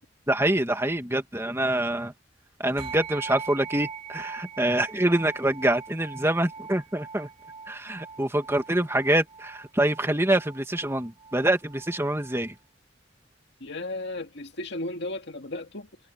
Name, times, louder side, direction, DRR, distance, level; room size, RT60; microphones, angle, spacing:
voice 1, 0.3-2.1 2.6-7.3 7.7-12.5, right 1 dB, 15° right, 2.2 m, -25 dB
sound 1, 2.8-12.5, right 5 dB, 30° right, 2.4 m, -41 dB
voice 2, 13.6-15.9, left 2 dB, 65° left, 2.2 m, -35 dB
head